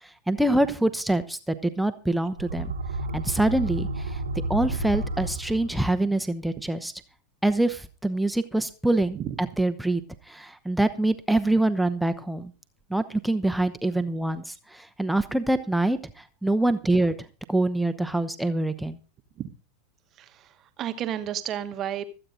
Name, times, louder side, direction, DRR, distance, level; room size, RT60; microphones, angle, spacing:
voice 1, 0.3-2.7 3.1-4.2 4.5-6.9 7.4-9.2 9.6-10.0 10.3-12.5 12.9-17.1 17.5-19.0, right 1 dB, ahead, 0.9 m, -25 dB
sound 1, 2.3-6.0, right 2 dB, 70° right, 1.1 m, -31 dB
voice 2, 20.2-22.0, right 10 dB, 30° right, 1.1 m, -32 dB
25.5 x 8.9 x 2.6 m
figure-of-eight pair, 90°, 0 cm